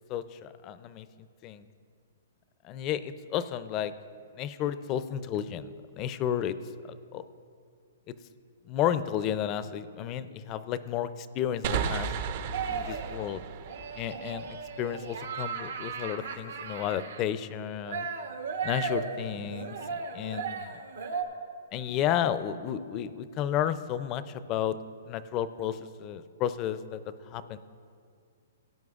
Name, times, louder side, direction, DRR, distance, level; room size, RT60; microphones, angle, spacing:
voice 1, 0.1-1.1 1.4-1.7 2.6-3.9 4.4-6.6 6.9-7.2 8.7-12.1 12.7-13.4 14.0-18.1 18.6-20.8 21.7-24.8 25.1-27.0 27.3-27.6, left 10 dB, 25° left, 14 dB, 0.4 m, -32 dB
sound 1, 11.6-15.1, right 7 dB, 45° right, 0.4 m, -34 dB
sound 2, 12.5-13.2 13.6-17.2 17.9-21.2, right 5 dB, 85° right, 1.0 m, -36 dB
17.5 x 9.2 x 2.4 m, 2.3 s
hypercardioid pair, 155°, 0 cm